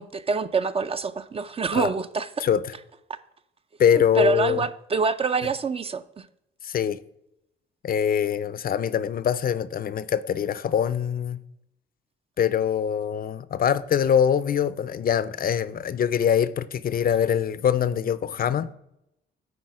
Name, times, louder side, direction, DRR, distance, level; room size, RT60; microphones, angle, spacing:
voice 1, 0.0-2.3 4.2-6.3, right 4 dB, 30° right, 0.4 m, -26 dB
voice 2, 2.4-2.7 3.8-4.6 6.6-7.0 7.8-11.4 12.4-18.7, left 8 dB, 45° left, 0.5 m, -23 dB
9.7 x 4.2 x 4.7 m
cardioid pair, 90°, 20 cm